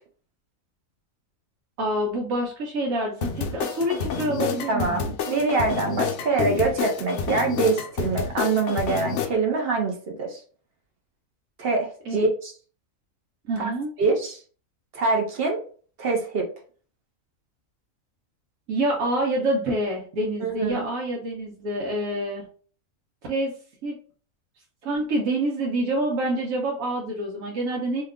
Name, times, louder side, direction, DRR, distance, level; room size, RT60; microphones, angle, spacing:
voice 1, 1.8-5.1 12.0-12.3 13.4-13.9 18.7-22.4 23.3-23.5 23.8-23.9 24.8-28.0, right 1 dB, 85° right, -2 dB, 1.1 m, -27 dB
sound 1, 3.2-9.3, left 7 dB, 65° left, 0.8 m, -29 dB
voice 2, 4.7-10.4 11.6-12.5 13.6-13.7 14.0-14.4 14.9-15.6 16.0-16.5 20.4-20.8, right 3 dB, 55° right, 2 dB, 0.8 m, -24 dB
2.8 x 2.3 x 3.5 m, 0.43 s
omnidirectional pair, 1.4 m